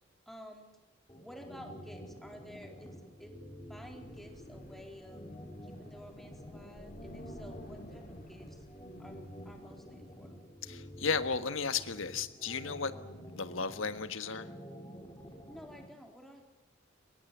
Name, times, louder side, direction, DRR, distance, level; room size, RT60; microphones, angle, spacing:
voice 1, 0.3-0.7 1.2-3.3 3.7-5.2 5.6-8.7 9.0-10.6 15.5-16.4, equal, ahead, 3 dB, 3.8 m, -52 dB
sound 1, 1.1-15.8, equal, 20° left, 5.3 m, -49 dB
Wind, 3.8-9.7, left 1 dB, 45° left, 2.7 m, -53 dB
voice 2, 10.6-12.9 13.3-14.5, left 5 dB, 70° left, 11 dB, 1.6 m, -34 dB
24.5 x 21.5 x 7.5 m, 1.0 s
head